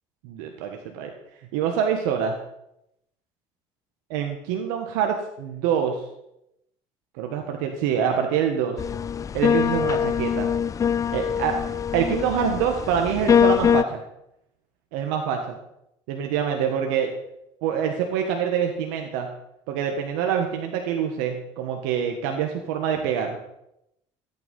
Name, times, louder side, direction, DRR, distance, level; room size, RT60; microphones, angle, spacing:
voice 1, 0.2-1.1 1.5-2.3 4.1-6.0 7.2-8.8 9.3-10.5 11.1-14.0 14.9-15.6 16.1-17.1 17.6-19.3 19.7-23.4, right 8 dB, 85° right, 4 dB, 1.5 m, -25 dB
sound 1, 8.8-13.8, left 8 dB, 30° left, 0.4 m, -23 dB
13.5 x 9.4 x 5.4 m, 0.82 s
supercardioid pair, 100°, 12 cm